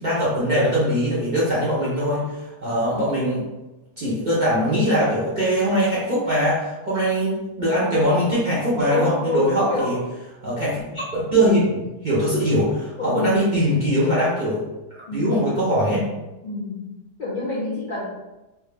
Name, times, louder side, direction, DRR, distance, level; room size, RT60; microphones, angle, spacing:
voice 1, 0.0-3.4 4.0-10.0 10.4-14.6 15.1-16.1, equal, 40° right, -9 dB, 0.7 m, -21 dB
voice 2, 8.9-10.0 13.0-13.4 15.1-15.6 16.4-18.1, left 2 dB, 65° left, -7 dB, 0.5 m, -27 dB
3.3 x 2.2 x 3.3 m, 1.0 s
omnidirectional pair, 1.8 m